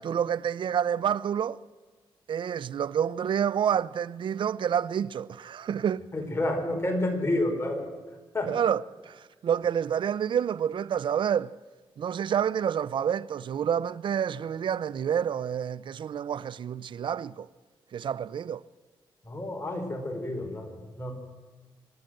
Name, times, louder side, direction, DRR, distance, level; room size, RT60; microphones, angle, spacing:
voice 1, 0.0-1.6 2.3-6.0 8.5-11.5 12.0-17.5 17.9-18.6, right 8 dB, 65° right, 0.6 m, -28 dB
voice 2, 6.1-7.9 8.3-8.5 19.2-21.1, left 1 dB, 30° left, 4.9 m, -29 dB
26.0 x 13.0 x 7.8 m
cardioid pair, 80°, 9 cm